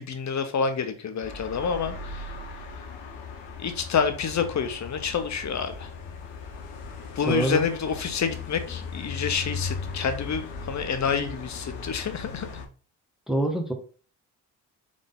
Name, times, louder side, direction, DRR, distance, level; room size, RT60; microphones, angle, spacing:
voice 1, 0.0-2.3 3.6-5.9 7.2-12.5, left 6 dB, 40° left, 8 dB, 1.0 m, -28 dB
sound 1, 1.2-12.7, left 4 dB, 80° left, 1.0 m, -38 dB
voice 2, 7.2-7.6 13.3-13.7, right 1 dB, ahead, 1 dB, 1.3 m, -25 dB
3.7 x 3.7 x 3.7 m, 0.39 s
hypercardioid pair, 55°, 41 cm